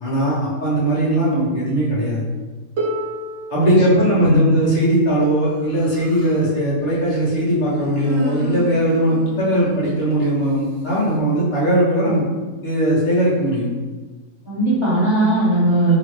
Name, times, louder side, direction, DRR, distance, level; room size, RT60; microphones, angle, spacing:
voice 1, 0.0-2.2 3.5-12.2 12.6-13.7, right 1 dB, 40° left, -8 dB, 0.9 m, -19 dB
Harp, 2.8-8.6 9.6-9.7, right 1 dB, 60° right, 1.0 m, -33 dB
Human voice, 5.5-6.5 7.6-10.3, equal, 80° right, 1.1 m, -32 dB
voice 2, 14.5-16.0, right 1 dB, 30° right, -8 dB, 0.5 m, -17 dB
2.8 x 2.6 x 3.1 m, 1.3 s
omnidirectional pair, 1.5 m